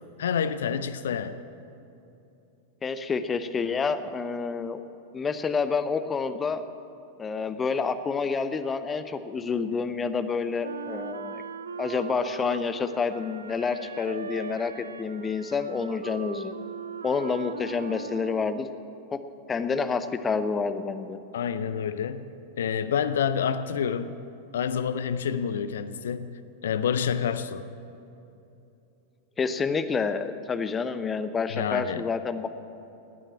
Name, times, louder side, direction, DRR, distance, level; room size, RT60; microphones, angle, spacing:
voice 1, 0.0-1.4 21.3-22.3 22.6-24.1 24.5-26.3 26.6-27.7 31.5-32.0, left 7 dB, 60° left, 13 dB, 0.6 m, -28 dB
voice 2, 2.8-4.8 5.1-6.6 7.2-11.4 11.8-16.5 17.0-18.7 19.1-19.2 19.5-21.2 29.4-32.5, left 5 dB, 20° left, 11 dB, 0.8 m, -28 dB
Wind instrument woodwind instrument, 10.6-18.8, right 6 dB, 70° right, 0.3 m, -39 dB
18.5 x 9.0 x 7.3 m, 2.8 s
figure-of-eight pair, 90°, 0 cm